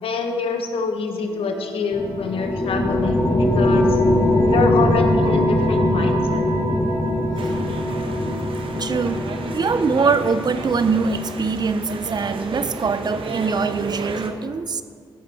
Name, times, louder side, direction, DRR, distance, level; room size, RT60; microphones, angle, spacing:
voice 1, 0.0-4.0 4.5-6.4, left 4 dB, 85° left, 5 dB, 0.9 m, -25 dB
sound 1, 1.2-10.9, right 2 dB, 90° right, 2.1 m, -36 dB
sound 2, 1.9-11.7, left 1 dB, 40° left, 1.2 m, -21 dB
sound 3, 7.4-14.3, right 4 dB, 70° right, 0.9 m, -33 dB
voice 2, 8.8-9.2 9.5-14.8, right 4 dB, 50° right, 12 dB, 0.5 m, -23 dB
14.0 x 5.3 x 4.1 m, 2.1 s
cardioid pair, 55°, 9 cm